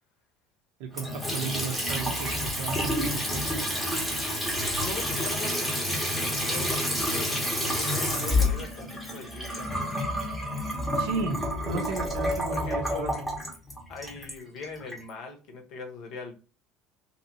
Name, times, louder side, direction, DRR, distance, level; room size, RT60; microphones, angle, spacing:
voice 1, 0.8-3.5 10.9-11.4 11.6-13.1, right 4 dB, 80° right, 2 dB, 0.5 m, -34 dB
Water tap faucet / Sink (filling or washing) / Trickle dribble, 0.9-15.0, left 1 dB, 5° left, 0.7 m, -29 dB
voice 2, 3.4-3.9 4.8-10.0 11.9-12.1 12.5-13.3 13.9-16.3, left 4 dB, 50° left, 4 dB, 0.8 m, -41 dB
2.9 x 2.7 x 2.7 m, 0.35 s
cardioid pair, 180°, 0 cm